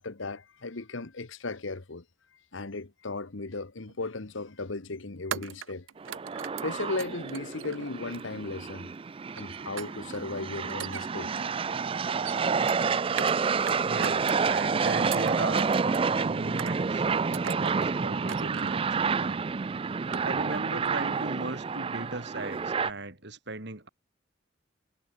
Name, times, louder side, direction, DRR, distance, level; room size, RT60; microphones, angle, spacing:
voice 1, 0.0-2.0 2.5-5.9 6.6-8.9 9.4-11.3, left 3 dB, 75° left, 1.3 m, -36 dB
sound 1, 3.9-4.1 5.3-8.3 9.4-10.2 10.7-11.6 12.0-13.4 13.7-14.6 15.0-16.1 16.6-17.0 17.3-17.9 18.3-18.9 19.4-19.5 19.9-20.6 20.9-21.2 21.5-21.6, right 8 dB, 80° right, 0.6 m, -40 dB
sound 2, 6.0-22.9, right 5 dB, 25° right, 0.4 m, -29 dB
voice 2, 13.8-19.5 20.2-23.9, right 2 dB, 60° right, 3.0 m, -38 dB
head